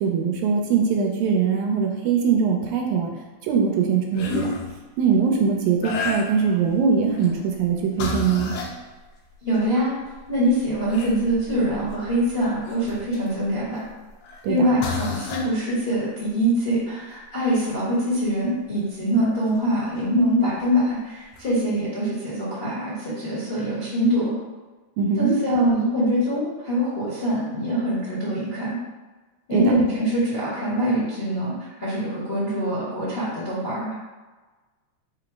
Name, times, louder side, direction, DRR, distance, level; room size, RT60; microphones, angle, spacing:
voice 1, 0.0-3.1 3.4-4.6 5.0-8.5 14.4-14.7 25.0-25.3 29.5-29.6, right 6 dB, 85° right, 1 dB, 2.0 m, -21 dB
sound 1, 4.1-4.7 5.8-6.6 7.1-7.4 8.0-8.8 9.6-9.7 10.1-13.3 14.2-14.4 14.8-15.5 18.8-18.9 20.6-20.7 21.3-21.5, left 4 dB, 80° left, 1.8 m, -31 dB
voice 2, 9.4-9.9 10.3-13.8 14.5-24.3 25.2-28.8 29.5-33.9, equal, 55° left, -11 dB, 0.6 m, -24 dB
5.1 x 2.0 x 4.5 m, 1.3 s
omnidirectional pair, 3.4 m